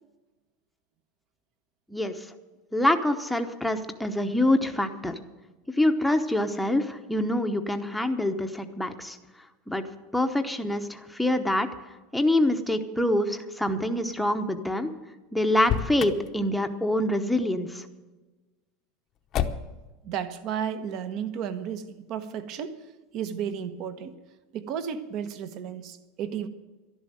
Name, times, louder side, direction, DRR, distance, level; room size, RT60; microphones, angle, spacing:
voice 1, 2.7-5.2 5.8-9.2 9.7-9.9 10.1-11.7 12.1-14.9 15.3-17.8, left 1 dB, ahead, 5 dB, 0.9 m, -25 dB
Motor vehicle (road), 15.5-16.3 19.3-19.9, left 9 dB, 35° left, 0.8 m, -29 dB
voice 2, 20.0-22.8 23.1-24.1 24.5-26.5, right 8 dB, 45° right, 11 dB, 1.2 m, -33 dB
12.5 x 11.0 x 7.8 m, 1.2 s
supercardioid pair, 155°, 0 cm